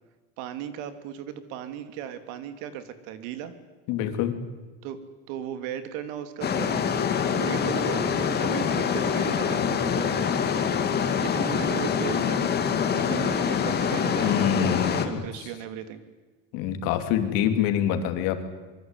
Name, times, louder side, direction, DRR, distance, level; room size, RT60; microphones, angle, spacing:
voice 1, 0.4-3.5 4.8-5.0 5.3-10.3 11.2-12.5 12.9-16.0, right 10 dB, 85° right, 10 dB, 3.0 m, -36 dB
voice 2, 3.9-4.4 14.2-15.2 16.5-18.5, left 9 dB, 70° left, 8 dB, 3.2 m, -25 dB
sound 1, 6.4-15.1, left 7 dB, 30° left, 2.4 m, -25 dB
24.5 x 23.5 x 9.3 m, 1.3 s
cardioid pair, 165°, 35 cm